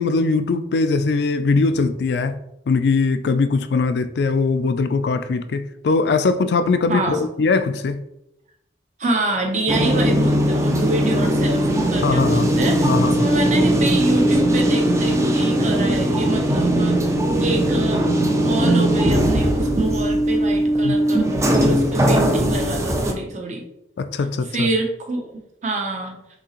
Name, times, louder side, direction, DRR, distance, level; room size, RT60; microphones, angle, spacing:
voice 1, 0.0-2.4 2.7-8.0 12.0-12.5 12.8-13.3 20.8-21.0 24.0-24.7, left 4 dB, 60° left, 0.3 m, -21 dB
voice 2, 6.9-7.2 9.0-23.6 24.5-25.3 25.6-26.2, right 2 dB, 40° right, 0.8 m, -26 dB
sound 1, 9.7-23.1, right 1 dB, 15° right, 0.4 m, -19 dB
5.9 x 2.8 x 2.9 m
head